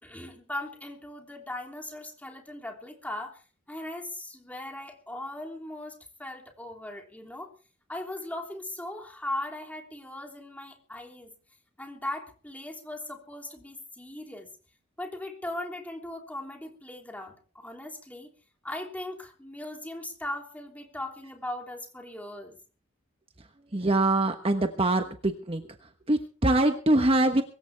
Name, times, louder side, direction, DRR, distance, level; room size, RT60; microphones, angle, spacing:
voice 1, 0.0-3.4 3.7-7.5 7.9-11.3 11.8-14.5 15.0-18.3 18.6-22.6, left 1 dB, 10° left, 2 dB, 3.2 m, -38 dB
voice 2, 23.7-25.6 26.1-27.4, right 2 dB, 30° right, 6 dB, 1.2 m, -23 dB
23.0 x 14.5 x 3.5 m, 0.38 s
head